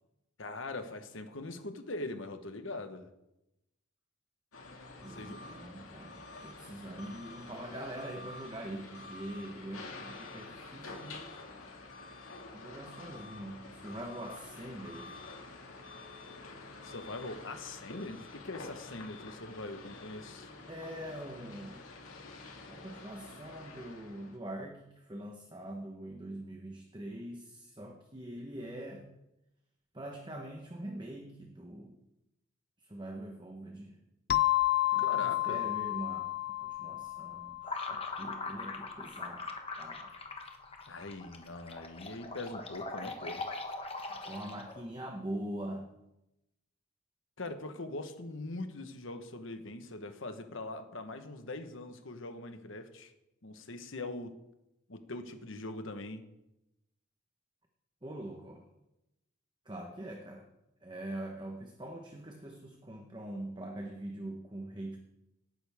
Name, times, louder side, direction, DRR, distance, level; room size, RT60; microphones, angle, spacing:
voice 1, 0.4-3.1 5.1-5.4 16.8-20.5 35.0-35.7 40.9-43.4 47.4-53.1 53.4-54.3 54.9-56.2, left 2 dB, 65° left, 8 dB, 1.2 m, -42 dB
sound 1, 4.5-24.4, left 3 dB, 85° left, 2.2 m, -48 dB
voice 2, 5.0-11.3 12.5-15.2 20.7-21.9 22.7-29.1 29.9-32.0 32.8-34.0 34.9-36.3 36.6-39.5 39.8-40.1 44.1-45.9 58.0-58.7 59.6-60.5 60.8-65.0, right 1 dB, 20° right, 2 dB, 1.1 m, -43 dB
sound 2, 34.3-38.7, left 15 dB, 45° left, 0.4 m, -31 dB
sound 3, 37.6-44.9, left 3 dB, 25° left, 1.2 m, -41 dB
18.0 x 9.9 x 3.6 m, 0.91 s
head